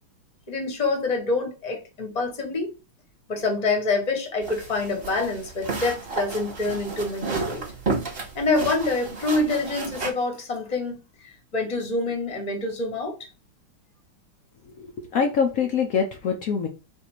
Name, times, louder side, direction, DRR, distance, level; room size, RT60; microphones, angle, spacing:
voice 1, 0.5-2.7 3.3-7.6 8.3-13.2, left 3 dB, 30° left, 0.8 m, -26 dB
sound 1, 4.4-10.1, right 3 dB, 30° right, 1.3 m, -32 dB
voice 2, 14.8-16.7, left 6 dB, 85° left, 0.7 m, -24 dB
4.1 x 2.7 x 4.4 m
omnidirectional pair, 2.3 m